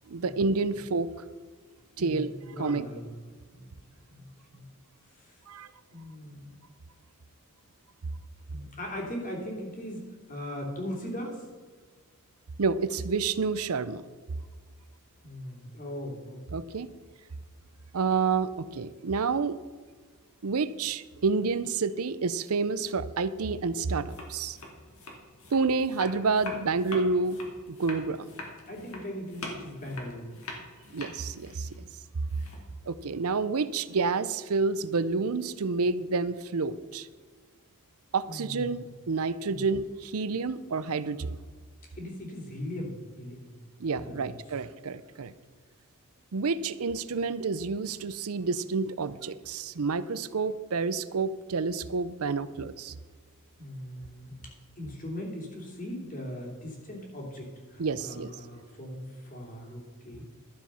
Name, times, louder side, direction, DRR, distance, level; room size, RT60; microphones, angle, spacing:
voice 1, 0.1-1.1 2.0-2.3 2.6-2.9 5.5-5.7 12.6-14.0 16.5-16.9 17.9-19.6 20.4-24.6 25.5-27.4 27.7-28.3 30.9-31.8 32.9-37.1 38.1-41.4 43.8-45.3 46.3-52.9 57.8-58.3, right 4 dB, 70° right, 15 dB, 0.6 m, -29 dB
voice 2, 2.0-3.1 3.5-3.7 4.1-4.2 4.5-4.6 5.2-5.3 5.9-6.5 8.5-11.4 15.2-16.4 28.7-30.4 38.3-38.7 39.5-39.6 41.9-43.5 44.0-44.3 53.6-60.3, left 1 dB, 40° left, -1 dB, 2.9 m, -39 dB
sound 1, 24.1-32.9, left 2 dB, 70° left, 2.6 m, -43 dB
12.0 x 7.4 x 5.6 m, 1.5 s
head